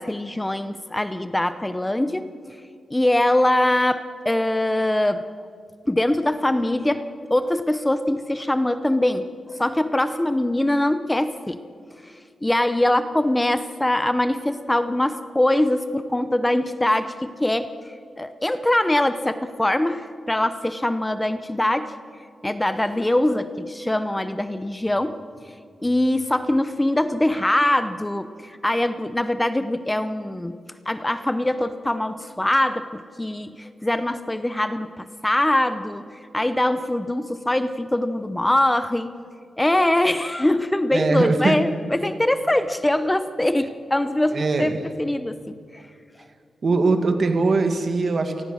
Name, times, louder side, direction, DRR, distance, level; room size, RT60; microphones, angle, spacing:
voice 1, 0.0-2.3 2.9-5.2 5.9-11.6 12.0-12.1 12.4-17.7 18.2-21.9 22.4-25.2 25.8-30.6 30.9-36.1 36.3-39.1 39.6-45.8, left 1 dB, 10° left, 11 dB, 0.7 m, -23 dB
voice 2, 40.9-41.6 44.3-44.8 46.6-48.4, right 3 dB, 40° right, 6 dB, 1.9 m, -21 dB
28.5 x 20.0 x 6.4 m, 2.3 s
wide cardioid pair, 160°, 0 cm